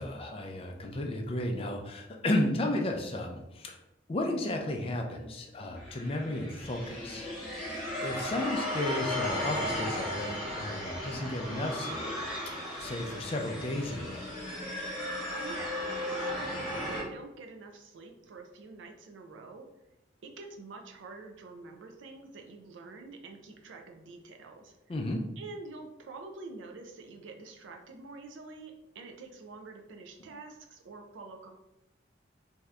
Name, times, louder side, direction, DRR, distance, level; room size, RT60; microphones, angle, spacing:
voice 1, 0.0-3.8 4.1-12.1 12.8-14.3 24.9-25.2, left 1 dB, 30° left, 2 dB, 0.4 m, -33 dB
sound 1, 5.8-17.0, left 1 dB, ahead, 1.1 m, -35 dB
voice 2, 15.3-19.7 20.2-24.7 25.4-31.5, right 3 dB, 85° right, 3 dB, 0.4 m, -47 dB
2.7 x 2.3 x 3.2 m, 0.93 s
head